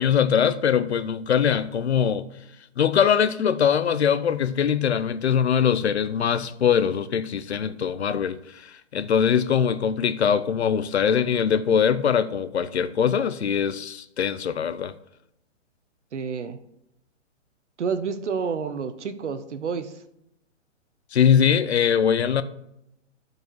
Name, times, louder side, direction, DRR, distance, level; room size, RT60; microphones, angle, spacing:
voice 1, 0.0-2.2 2.8-14.9 21.1-22.4, left 8 dB, 60° left, 0.6 m, -22 dB
voice 2, 16.1-16.6 17.8-20.0, right 6 dB, 65° right, 1.0 m, -29 dB
12.5 x 4.8 x 4.6 m
hypercardioid pair, 180°, 37 cm